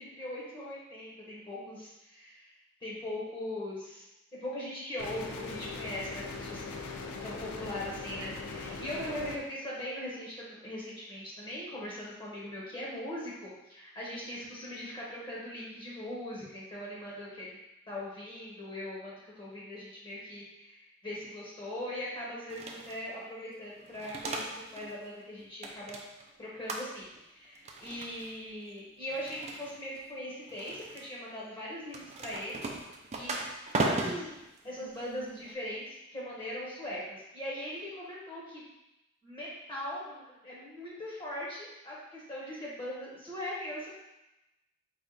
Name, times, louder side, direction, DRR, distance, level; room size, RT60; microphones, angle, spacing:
voice 1, 0.0-2.5 2.8-4.1 4.4-6.6 7.2-17.6 17.9-26.0 26.4-32.6 33.1-33.4 33.8-34.3 34.6-38.6 39.2-43.9, left 1 dB, 25° left, -6 dB, 0.9 m, -40 dB
sound 1, 5.0-9.4, left 4 dB, 85° left, 0.4 m, -40 dB
sound 2, 22.5-23.0 23.8-24.9 25.2-26.3 26.7-27.2 27.5-28.4 29.1-30.0 30.5-31.1 31.9-35.5, right 2 dB, 30° right, 0.4 m, -37 dB
4.1 x 2.4 x 3.8 m, 0.94 s
head